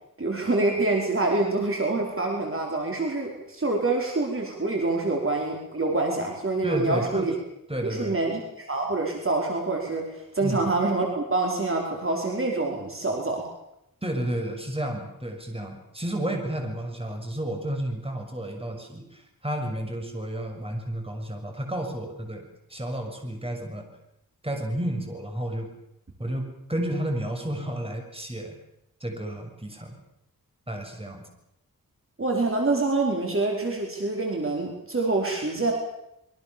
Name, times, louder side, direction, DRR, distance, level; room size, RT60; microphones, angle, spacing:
voice 1, 0.2-7.3 7.9-13.5 32.2-35.7, right 2 dB, 40° right, 0 dB, 4.9 m, -26 dB
voice 2, 6.6-7.3 7.7-8.2 10.4-10.6 14.0-23.9 24.4-25.7 26.2-28.6 29.0-30.0 30.7-31.3, right 1 dB, 15° right, 3 dB, 6.7 m, -31 dB
26.0 x 23.5 x 7.2 m, 0.83 s
wide cardioid pair, 90°, 34 cm